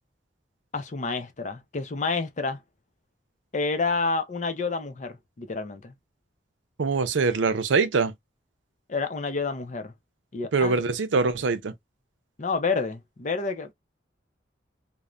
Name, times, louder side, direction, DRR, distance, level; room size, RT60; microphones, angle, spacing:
voice 1, 0.7-2.6 3.5-5.9 8.9-9.9 10.3-10.8 12.4-13.7, left 4 dB, 40° left, 0.5 m, -29 dB
voice 2, 6.8-8.1 10.5-11.7, right 4 dB, 85° right, 0.5 m, -23 dB
3.0 x 2.1 x 2.3 m
head